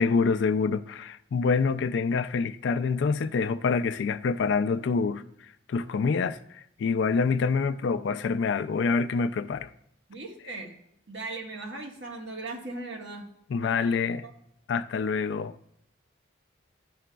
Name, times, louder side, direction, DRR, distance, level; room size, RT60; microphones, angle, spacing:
voice 1, 0.0-5.2 5.7-9.7 13.5-14.3 14.7-15.5, left 5 dB, 70° left, 0.3 m, -26 dB
voice 2, 10.1-10.7 11.1-13.3 13.6-14.3, right 2 dB, 75° right, 1.3 m, -39 dB
12.0 x 4.9 x 2.2 m
head